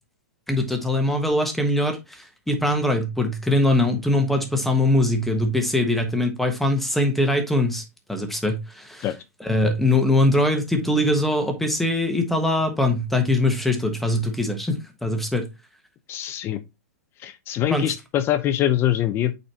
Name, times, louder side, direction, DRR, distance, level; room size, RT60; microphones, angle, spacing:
voice 1, 0.5-7.8 8.1-9.1 9.4-14.7 15.0-15.4 17.7-17.9, left 1 dB, ahead, 1.2 m, -22 dB
voice 2, 16.1-16.6 17.2-19.4, left 11 dB, 25° left, 0.7 m, -23 dB
8.6 x 4.1 x 2.9 m
hypercardioid pair, 145°, 9 cm